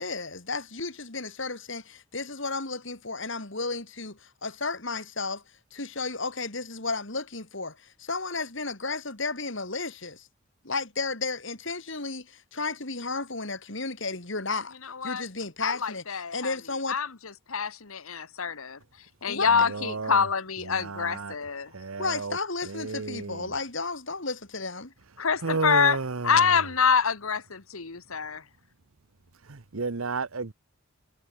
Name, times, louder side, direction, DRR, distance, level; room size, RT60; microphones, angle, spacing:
voice 1, 0.0-5.4 5.7-10.3 10.6-14.8 15.0-17.0 19.3-19.5 22.0-24.9, left 3 dB, 60° left, 3.1 m, -33 dB
voice 2, 14.8-15.2 15.6-16.6 16.9-17.1 17.5-18.8 19.2-21.7 25.2-26.0 26.2-28.4, left 6 dB, 80° left, 1.4 m, -26 dB
voice 3, 19.5-20.2 20.7-21.3 21.7-22.4 22.6-23.5 25.4-26.5 29.4-30.5, right 4 dB, 75° right, 1.0 m, -32 dB
head